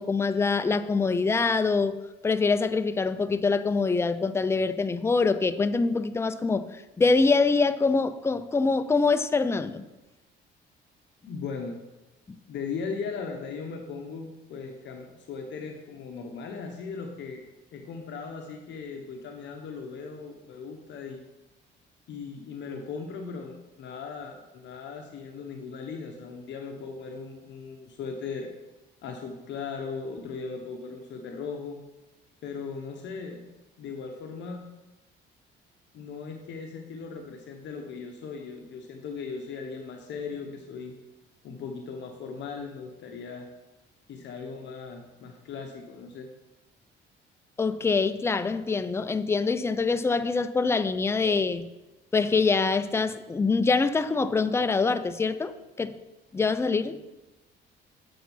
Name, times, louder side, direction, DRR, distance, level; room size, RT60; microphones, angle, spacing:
voice 1, 0.0-2.0 2.2-9.9 12.3-12.4 47.6-51.7 52.1-55.5 55.8-55.9 56.3-57.0, left 4 dB, 15° left, 12 dB, 0.4 m, -24 dB
voice 2, 11.2-11.7 12.5-17.4 17.7-21.2 22.1-28.5 29.0-31.8 32.4-33.4 33.8-34.6 35.9-40.9 41.4-43.5 44.1-46.3, left 5 dB, 65° left, 3 dB, 1.0 m, -38 dB
7.7 x 7.1 x 5.5 m, 1.1 s
cardioid pair, 120°, 20 cm